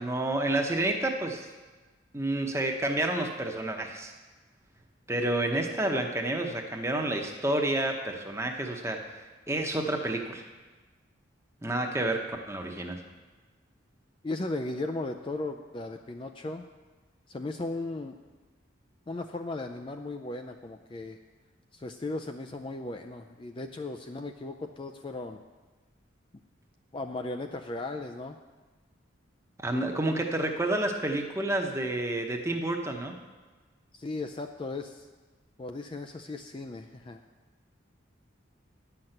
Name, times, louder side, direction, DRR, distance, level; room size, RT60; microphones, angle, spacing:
voice 1, 0.0-1.5 2.1-4.1 5.1-9.0 9.5-10.5 11.6-13.0 29.6-33.2, right 1 dB, 15° right, 3 dB, 0.8 m, -29 dB
voice 2, 14.2-16.6 17.3-18.1 19.1-21.2 21.7-25.4 26.9-28.4 33.9-35.1 35.6-37.2, left 2 dB, 25° left, 5 dB, 0.4 m, -36 dB
10.5 x 5.8 x 7.8 m, 1.3 s
head